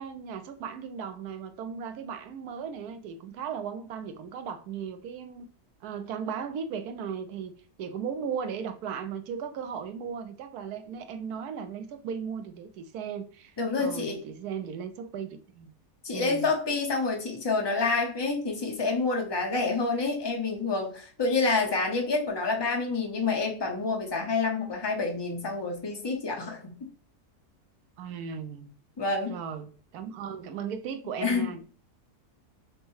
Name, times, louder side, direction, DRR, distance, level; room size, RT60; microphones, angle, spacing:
voice 1, 0.0-5.5 5.8-7.5 7.8-15.7 16.1-16.5 28.0-28.7 29.3-31.6, right 7 dB, 80° right, 1.1 m, -36 dB
voice 2, 13.6-14.2 16.0-26.8 29.0-29.3 31.2-31.5, left 3 dB, 20° left, 0.7 m, -28 dB
6.2 x 2.2 x 3.1 m
omnidirectional pair, 1.7 m